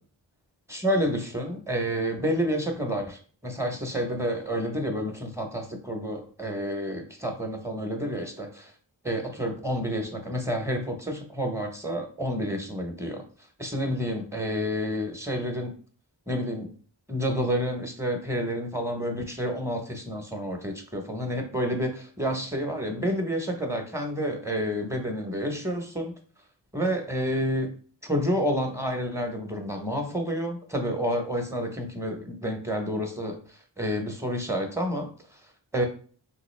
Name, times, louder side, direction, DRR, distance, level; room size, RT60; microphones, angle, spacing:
voice 1, 0.7-8.7 9.0-13.2 13.6-15.7 16.3-16.7 17.1-26.1 26.7-27.7 28.0-35.1 35.7-35.9, equal, 5° right, 4 dB, 0.8 m, -29 dB
3.5 x 2.8 x 3.2 m, 0.41 s
wide cardioid pair, 55°, 45 cm